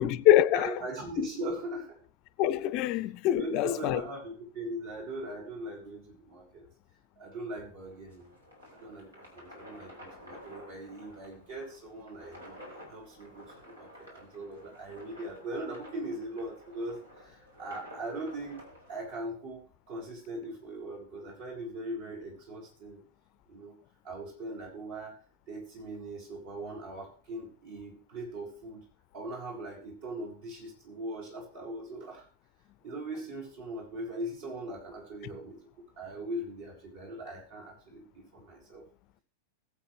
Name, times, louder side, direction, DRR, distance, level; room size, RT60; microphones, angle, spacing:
voice 1, 0.0-0.7 1.2-1.3 2.4-4.0, left 13 dB, 40° left, 0.6 m, -25 dB
voice 2, 0.5-1.9 3.3-6.7 7.2-8.3 8.7-12.6 12.9-18.6 18.9-23.0 23.5-23.8 24.0-25.1 25.5-28.9 29.1-32.3 32.8-35.6 36.0-38.8, right 1 dB, 55° right, 6.2 m, -40 dB
sound 1, 7.8-19.0, equal, 75° right, 4.2 m, -51 dB
20.5 x 8.0 x 3.4 m
figure-of-eight pair, 90°, 0 cm